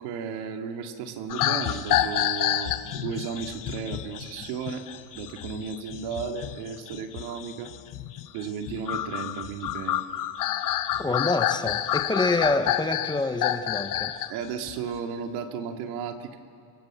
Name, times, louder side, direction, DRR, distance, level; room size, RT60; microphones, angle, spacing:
voice 1, 0.0-4.8 5.2-7.7 8.3-10.0 14.3-16.4, right 6 dB, 85° right, 2.6 m, -34 dB
sound 1, 1.3-14.3 14.7-15.0, left 12 dB, 40° left, 0.9 m, -29 dB
voice 2, 11.0-14.1, left 2 dB, 10° left, 0.6 m, -27 dB
28.5 x 25.5 x 7.7 m
cardioid pair, 165°, 50 cm